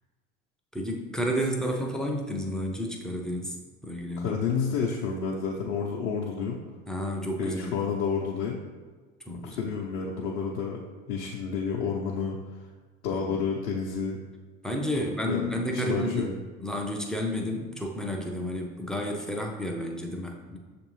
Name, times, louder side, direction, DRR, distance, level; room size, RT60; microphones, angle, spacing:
voice 1, 0.7-3.6 3.8-4.4 6.9-7.8 9.3-9.7 13.1-13.4 14.6-16.3 16.6-20.6, equal, ahead, 0 dB, 0.3 m, -31 dB
voice 2, 4.2-6.6 7.4-8.6 9.4-10.8 11.1-12.4 13.0-14.2 15.0-15.4 15.7-16.3, left 5 dB, 50° left, -3 dB, 0.7 m, -30 dB
6.6 x 2.6 x 3.1 m, 1.4 s
figure-of-eight pair, 70°, 41 cm